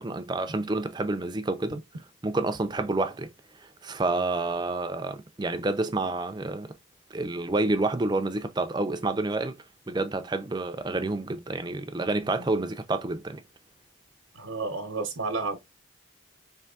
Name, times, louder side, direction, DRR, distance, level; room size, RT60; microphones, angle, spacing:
voice 1, 0.0-1.8 2.2-3.3 3.8-6.7 7.1-13.4, right 2 dB, 20° right, 0.4 m, -29 dB
voice 2, 14.3-15.6, right 3 dB, 80° right, 0.8 m, -32 dB
4.5 x 3.1 x 2.4 m
head